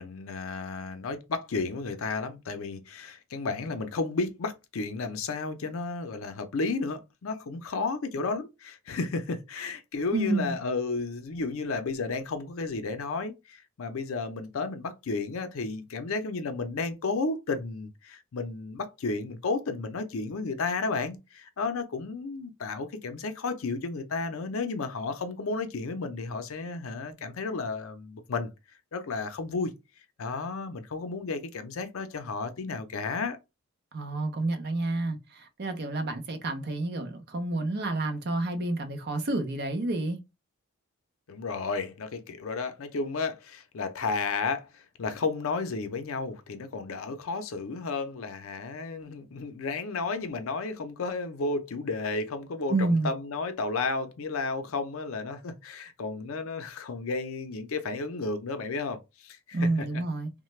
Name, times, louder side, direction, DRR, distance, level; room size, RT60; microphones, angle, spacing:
voice 1, 0.0-28.5 28.9-29.7 30.2-33.4 41.3-59.9, left 3 dB, 65° left, 0.5 m, -33 dB
voice 2, 10.1-10.5 33.9-40.2 52.7-53.1 59.5-60.3, right 2 dB, 50° right, 0.6 m, -29 dB
3.1 x 2.1 x 3.1 m
head